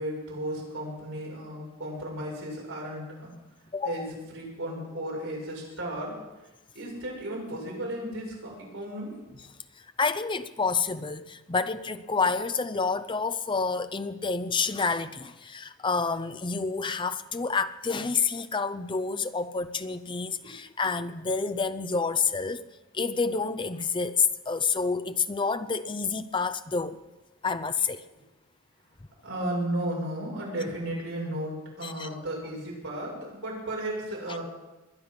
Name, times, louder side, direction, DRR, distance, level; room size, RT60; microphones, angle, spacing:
voice 1, 0.0-3.3 3.8-6.1 6.7-9.4 29.2-34.4, right 1 dB, 65° right, 7.1 m, -34 dB
voice 2, 3.7-4.1 10.0-22.6 22.9-27.0 27.4-28.0 31.8-32.1, left 4 dB, 25° left, 0.6 m, -28 dB
21.5 x 10.5 x 6.0 m
head